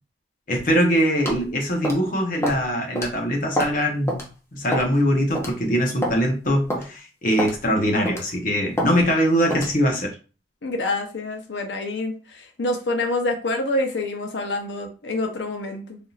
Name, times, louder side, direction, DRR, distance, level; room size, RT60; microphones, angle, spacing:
voice 1, 0.5-4.3 4.5-10.1, equal, 50° left, 2 dB, 0.8 m, -22 dB
sound 1, 1.3-1.4 1.8-2.1 2.4-2.6 3.0-3.1 3.6-3.8 4.1-4.2 4.7-5.0 5.4-5.5 6.0-6.2 6.7-6.9 7.4-7.6 8.1-8.3 8.8-8.9 9.5-9.7, equal, 15° left, 0.6 m, -26 dB
voice 2, 10.6-16.0, left 2 dB, 85° left, 4 dB, 0.7 m, -27 dB
3.5 x 2.7 x 2.4 m, 0.34 s
head